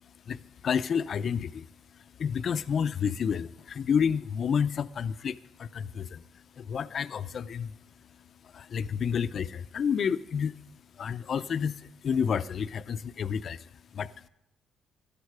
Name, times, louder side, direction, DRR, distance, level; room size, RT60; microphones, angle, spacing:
voice 1, 0.3-1.6 2.2-6.2 6.6-7.7 8.5-10.5 11.0-11.7 12.0-13.6 13.9-14.1, left 7 dB, 55° left, 0.6 m, -29 dB
17.0 x 12.5 x 4.8 m
cardioid pair, 85°, 0 cm